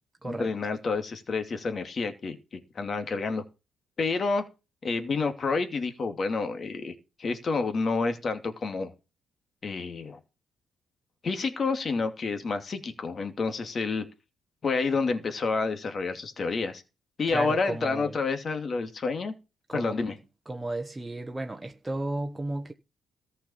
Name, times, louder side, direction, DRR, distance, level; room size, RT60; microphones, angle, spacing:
voice 1, 0.2-3.4 4.0-4.5 4.8-8.9 9.6-10.2 11.2-14.1 14.6-16.8 17.2-19.3 19.7-20.1, left 4 dB, 45° left, 2.5 m, -29 dB
voice 2, 17.3-18.1 19.7-20.1 20.5-22.7, right 2 dB, 15° right, 1.2 m, -33 dB
14.5 x 5.8 x 7.2 m
cardioid pair, 90°, 0 cm